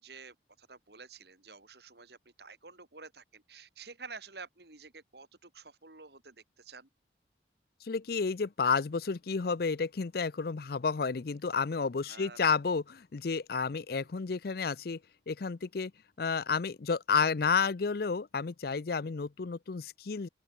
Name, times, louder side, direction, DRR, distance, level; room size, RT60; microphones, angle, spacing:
voice 1, 0.0-6.9 12.1-12.4, right 4 dB, 60° right, 2.8 m, -50 dB
voice 2, 7.8-15.0 15.3-15.9 16.2-20.3, left 5 dB, 55° left, 0.5 m, -31 dB
open air
head